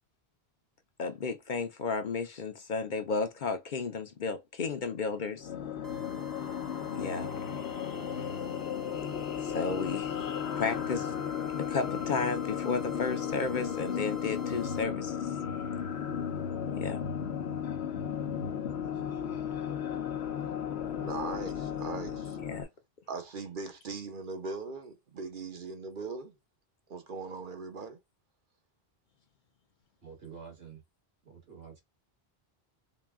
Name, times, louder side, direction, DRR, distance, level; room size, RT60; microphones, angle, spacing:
voice 1, 1.0-5.5 6.9-7.3 9.4-10.1 10.6-11.1 11.6-15.2 16.8-17.0 22.5-22.7, left 4 dB, 55° left, 0.7 m, -33 dB
sound 1, 5.3-22.6, left 8 dB, 85° left, 1.0 m, -35 dB
sound 2, 5.8-14.8, right 4 dB, 30° right, 0.4 m, -52 dB
voice 2, 21.0-22.4 23.1-26.3 26.9-28.0, right 4 dB, 55° right, 0.9 m, -40 dB
voice 3, 30.0-30.8 31.2-31.8, right 6 dB, 75° right, 1.8 m, -48 dB
4.0 x 2.2 x 3.5 m
omnidirectional pair, 1.0 m